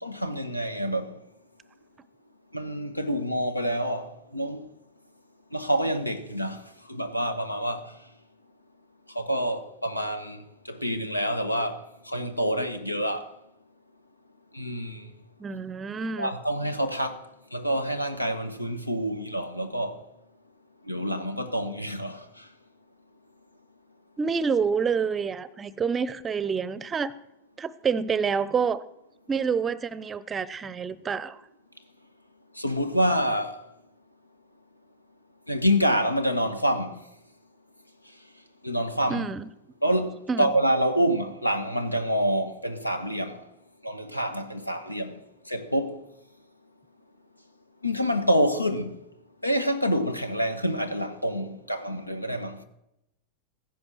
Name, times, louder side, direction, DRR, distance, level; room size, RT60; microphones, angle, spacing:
voice 1, 0.0-1.1 2.5-4.6 5.5-6.6 6.9-7.9 9.1-10.4 10.7-13.3 14.5-15.1 16.2-17.2 17.5-20.0 20.9-22.2 32.6-33.6 35.5-37.0 38.6-39.3 39.8-43.4 43.8-45.2 45.5-46.0 47.8-49.0 49.4-52.6, equal, 85° left, 1.2 m, -27 dB
voice 2, 15.4-16.3 24.2-27.1 27.6-28.8 29.3-31.4 39.1-39.5 40.3-40.5, right 6 dB, 20° right, 0.6 m, -28 dB
15.0 x 10.5 x 6.2 m
figure-of-eight pair, 90°, 0 cm